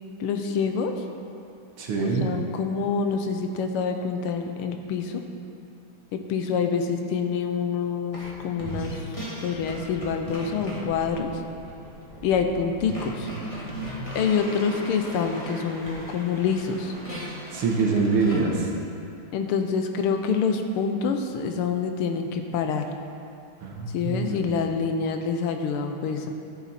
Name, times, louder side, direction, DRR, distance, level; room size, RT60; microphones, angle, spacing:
voice 1, 0.2-0.9 2.0-5.2 6.1-9.0 9.4-11.3 12.2-13.3 14.1-16.9 18.2-18.4 19.3-22.9 23.9-26.3, left 6 dB, 85° left, 5 dB, 1.7 m, -26 dB
voice 2, 1.8-2.3 17.5-18.5 23.6-24.4, right 4 dB, 85° right, 0 dB, 2.2 m, -24 dB
sound 1, 8.1-8.3 8.6-18.4, equal, 15° left, 1.9 m, -37 dB
13.5 x 7.2 x 4.2 m, 2.6 s
omnidirectional pair, 2.4 m